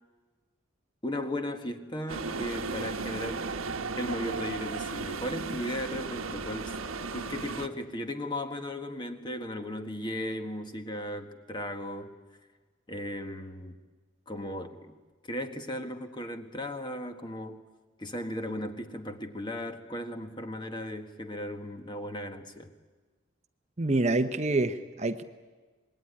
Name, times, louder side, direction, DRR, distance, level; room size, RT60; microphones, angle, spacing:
voice 1, 1.0-3.5 4.0-6.7 7.1-12.1 12.9-13.8 14.3-15.0 15.3-17.6 18.0-22.7, left 1 dB, 20° left, 7 dB, 1.6 m, -36 dB
sound 1, 2.1-7.7, right 4 dB, 85° right, 1.3 m, -35 dB
voice 2, 23.8-25.2, right 2 dB, 35° right, 9 dB, 0.9 m, -27 dB
26.0 x 21.0 x 9.9 m, 1.3 s
head